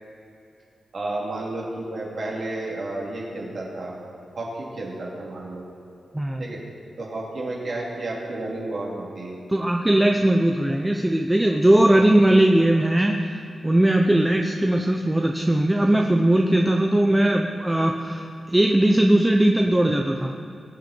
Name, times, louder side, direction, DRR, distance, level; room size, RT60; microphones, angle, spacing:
voice 1, 0.9-4.0 4.3-5.6 6.4-6.6 7.0-9.4 11.9-12.0, right 2 dB, 50° right, -4 dB, 2.9 m, -31 dB
voice 2, 6.1-6.4 9.5-20.3, right 1 dB, 10° right, 2 dB, 0.6 m, -19 dB
21.0 x 9.3 x 4.4 m, 2.7 s
wide cardioid pair, 155°, 0 cm